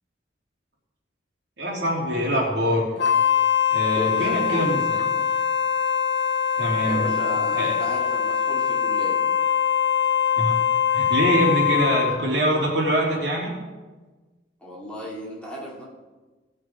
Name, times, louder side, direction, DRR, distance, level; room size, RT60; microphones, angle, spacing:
voice 1, 1.6-2.9 3.7-5.0 6.6-7.1 7.5-7.7 10.4-10.6 10.9-13.5, right 1 dB, 70° right, -2 dB, 3.0 m, -24 dB
Wind instrument woodwind instrument, 3.0-12.3, left 8 dB, 80° left, 0.9 m, -22 dB
voice 2, 4.0-4.9 6.8-9.2 14.6-15.8, left 1 dB, 5° left, -6 dB, 2.9 m, -34 dB
18.0 x 6.5 x 4.7 m, 1.2 s
head